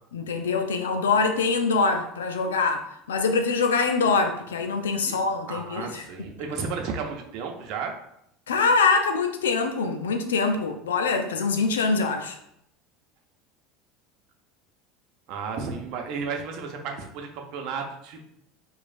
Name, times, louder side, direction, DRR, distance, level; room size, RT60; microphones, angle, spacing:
voice 1, 0.1-6.0 8.5-12.4, left 4 dB, 85° left, 6 dB, 0.4 m, -24 dB
voice 2, 5.5-8.0 15.3-18.3, right 5 dB, 60° right, 3 dB, 0.7 m, -33 dB
4.9 x 2.4 x 2.5 m, 0.76 s
hypercardioid pair, 80°, 0 cm